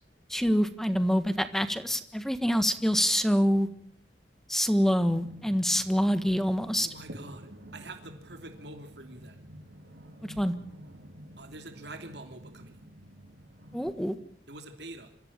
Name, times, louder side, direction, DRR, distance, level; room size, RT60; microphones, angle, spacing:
voice 1, 0.3-3.7 4.5-6.9 10.2-10.5 13.7-14.2, equal, ahead, 10 dB, 1.5 m, -26 dB
sound 1, 5.0-13.9, equal, 85° right, 3.6 m, -50 dB
voice 2, 6.8-9.4 11.4-12.9 14.5-15.1, right 2 dB, 70° right, 5 dB, 3.1 m, -46 dB
26.5 x 15.5 x 8.9 m, 0.63 s
head